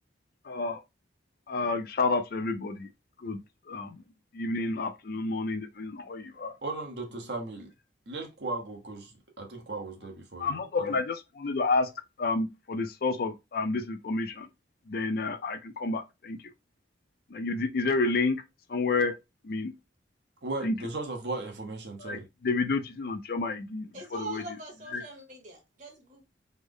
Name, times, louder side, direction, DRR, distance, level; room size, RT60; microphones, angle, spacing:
voice 1, 0.4-0.8 1.5-2.9 3.2-3.4 3.7-4.0 4.3-6.5 10.4-11.9 12.2-14.5 14.9-16.4 17.3-18.4 18.7-19.2 19.4-19.7 20.6-20.7 22.0-24.6 24.9-25.0, left 3 dB, 50° left, 0.4 m, -30 dB
voice 2, 6.6-7.7 8.1-10.5 10.8-11.0 20.4-22.3, right 2 dB, 60° right, 0.9 m, -36 dB
voice 3, 23.9-26.2, right 2 dB, 40° right, 1.1 m, -42 dB
3.3 x 2.0 x 3.5 m
head